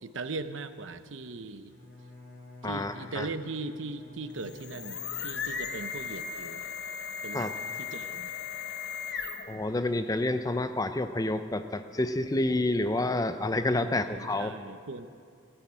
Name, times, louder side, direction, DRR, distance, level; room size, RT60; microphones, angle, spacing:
voice 1, 0.0-1.7 2.6-6.6 7.2-7.5 7.9-8.3 13.7-15.1, right 3 dB, 70° right, 11 dB, 0.8 m, -39 dB
Bowed string instrument, 1.7-5.9, left 2 dB, 75° left, 3.2 m, -51 dB
voice 2, 2.6-3.3 7.3-7.5 9.5-14.5, left 2 dB, 20° left, 10 dB, 0.5 m, -29 dB
sound 1, 4.3-9.6, left 6 dB, 55° left, 1.0 m, -37 dB
15.0 x 10.0 x 8.6 m, 2.3 s
head